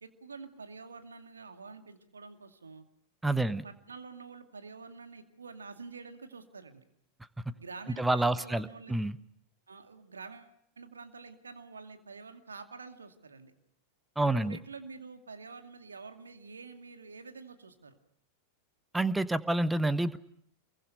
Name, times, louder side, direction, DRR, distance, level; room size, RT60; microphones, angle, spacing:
voice 1, 0.0-2.8 3.3-6.8 7.5-9.0 9.7-13.5 14.2-18.0, right 4 dB, 75° right, 6 dB, 2.4 m, -47 dB
voice 2, 3.2-3.6 8.0-9.2 14.2-14.6 18.9-20.2, right 2 dB, 5° right, 14 dB, 1.2 m, -28 dB
28.0 x 22.5 x 6.6 m, 0.70 s
figure-of-eight pair, 90°, 0 cm